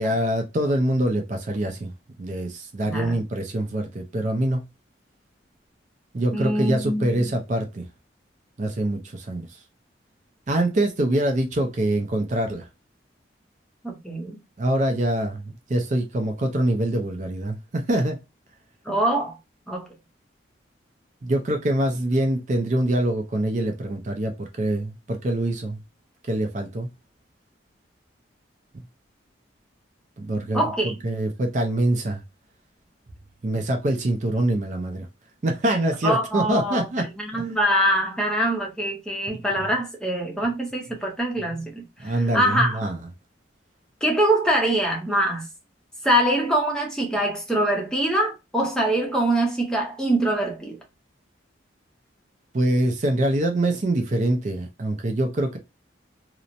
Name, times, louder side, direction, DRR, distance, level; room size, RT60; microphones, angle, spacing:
voice 1, 0.0-1.9 2.2-4.6 6.1-7.9 8.6-9.5 10.5-12.7 14.6-15.4 15.7-18.2 21.2-25.8 26.2-26.9 30.2-32.2 33.4-35.1 35.4-37.1 42.0-43.0 52.5-55.6, right 1 dB, 40° right, 0.4 m, -24 dB
voice 2, 2.9-3.2 6.3-7.3 13.8-14.4 18.9-19.3 19.7-19.9 30.5-31.0 36.0-42.8 44.0-45.5 46.0-50.8, right 1 dB, 5° left, 0.6 m, -24 dB
2.9 x 2.0 x 2.5 m
head